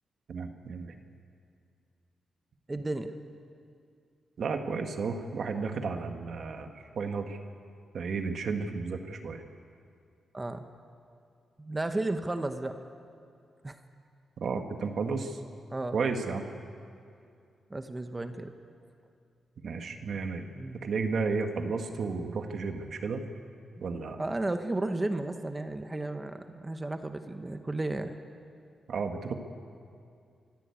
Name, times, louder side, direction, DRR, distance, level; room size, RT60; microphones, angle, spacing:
voice 1, 0.3-0.9 4.4-7.4 7.9-9.4 14.4-15.4 15.9-16.5 19.6-20.5 20.8-23.3 23.8-24.2 28.9-29.3, right 4 dB, 55° right, 5 dB, 1.6 m, -33 dB
voice 2, 2.7-3.1 10.3-10.7 11.6-12.8 13.6-13.8 15.7-16.0 17.7-18.5 20.5-20.8 24.2-28.2, right 2 dB, 15° right, 7 dB, 1.0 m, -33 dB
24.5 x 15.0 x 8.4 m, 2.4 s
wide cardioid pair, 135°, 0 cm